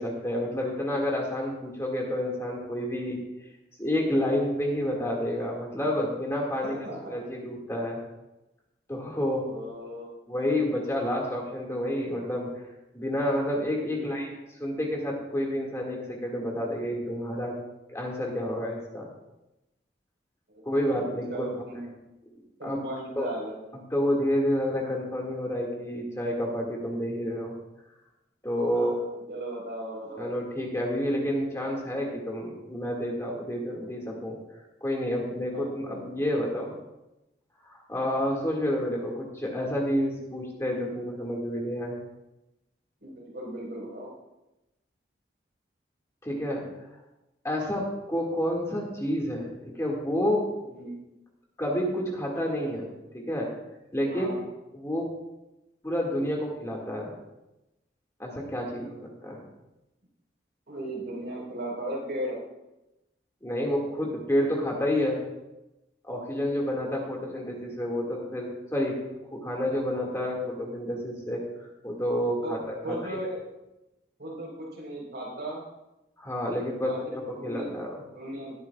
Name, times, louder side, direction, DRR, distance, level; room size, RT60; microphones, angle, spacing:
voice 1, 0.0-3.2 3.8-8.0 8.9-9.4 10.3-12.6 12.9-14.3 14.6-17.6 17.9-19.1 20.6-21.5 22.6-22.8 23.2-23.3 23.7-27.5 28.4-29.0 30.2-34.4 34.8-36.7 37.7-42.0 46.2-46.6 47.4-50.5 51.6-52.9 53.1-53.5 53.9-54.3 54.7-55.1 55.8-57.1 58.2-59.4 63.4-65.2 66.0-69.0 69.3-73.2 76.2-78.0, left 1 dB, 15° left, -1 dB, 2.0 m, -29 dB
voice 2, 6.6-7.2 9.2-10.1 13.9-14.3 20.5-21.9 22.6-23.6 28.7-30.2 35.5-36.1 43.0-44.1 50.7-51.0 54.1-54.5 60.7-62.4 72.4-72.5 72.8-73.4 74.2-75.6 76.8-77.9 78.1-78.5, right 1 dB, 75° right, -3 dB, 4.5 m, -37 dB
19.5 x 9.5 x 2.4 m, 0.96 s
head